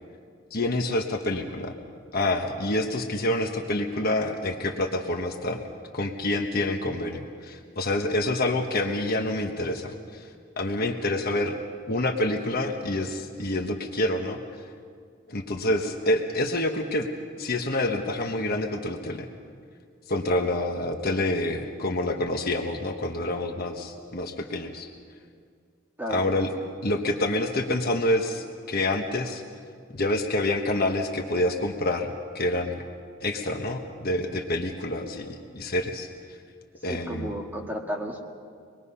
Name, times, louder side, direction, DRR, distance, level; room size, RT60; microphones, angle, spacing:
voice 1, 0.5-1.7 2.1-5.6 5.9-10.3 10.6-11.6 11.9-14.4 15.3-17.1 17.4-19.3 20.1-24.9 26.1-26.5 26.8-29.4 29.9-32.8 33.2-36.1 36.8-37.3, left 1 dB, 50° left, 3 dB, 1.2 m, -27 dB
voice 2, 36.9-38.2, equal, 10° right, -1 dB, 1.7 m, -33 dB
25.0 x 21.0 x 5.6 m, 2.2 s
head